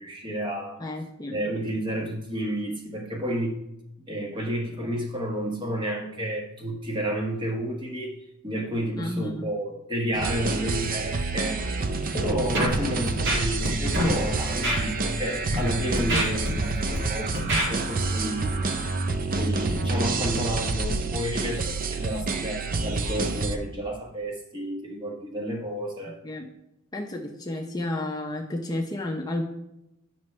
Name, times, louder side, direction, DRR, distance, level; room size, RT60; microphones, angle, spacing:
voice 1, 0.0-0.8 1.3-3.6 4.1-8.2 8.4-11.6 12.1-18.6 19.3-26.2, equal, 25° right, 0 dB, 1.2 m, -31 dB
voice 2, 0.8-1.4 8.9-9.5 13.2-13.3 26.2-26.5 26.9-29.4, left 1 dB, 20° left, 1 dB, 0.6 m, -31 dB
sound 1, 10.1-23.6, right 3 dB, 45° right, 0.5 m, -28 dB
Scratching (performance technique), 12.5-12.7 13.1-13.7 13.9-14.1 14.6-14.8 15.3-15.5 16.0-17.0 17.3-17.7, right 1 dB, 60° right, 1.8 m, -26 dB
9.0 x 6.0 x 3.2 m, 0.89 s
head